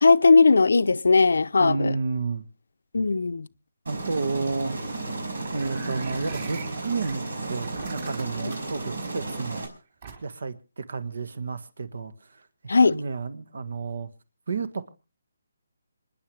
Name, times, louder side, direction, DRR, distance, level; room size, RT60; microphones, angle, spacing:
voice 1, 0.0-1.9 2.9-3.5 8.4-8.5 12.7-13.0, left 4 dB, 80° left, 0.6 m, -18 dB
voice 2, 1.6-2.5 3.9-4.7 5.5-7.2 7.5-9.7 10.2-14.1 14.5-14.9, right 4 dB, 70° right, 1.5 m, -31 dB
Aircraft, 3.9-9.7, right 2 dB, 85° right, 5.0 m, -33 dB
sound 1, 5.6-7.1 7.6-8.8 10.0-10.5, right 5 dB, 45° right, 3.9 m, -41 dB
27.0 x 10.5 x 3.3 m
hypercardioid pair, 165°, 0 cm